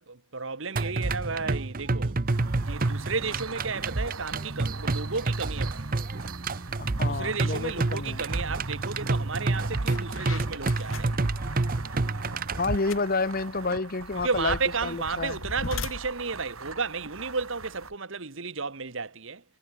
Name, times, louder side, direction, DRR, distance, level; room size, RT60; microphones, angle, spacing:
voice 1, 0.0-2.2 2.6-5.9 7.0-11.1 14.2-19.4, right 4 dB, 65° right, 1.6 m, -33 dB
sound 1, 0.8-12.8, right 3 dB, 40° right, 0.8 m, -29 dB
sound 2, 2.3-17.9, right 4 dB, 85° right, 7.6 m, -43 dB
voice 2, 6.8-8.2 12.6-15.4, left 3 dB, 45° left, 1.0 m, -30 dB
sound 3, 9.1-9.3 9.7-17.9, left 3 dB, 70° left, 2.0 m, -41 dB
head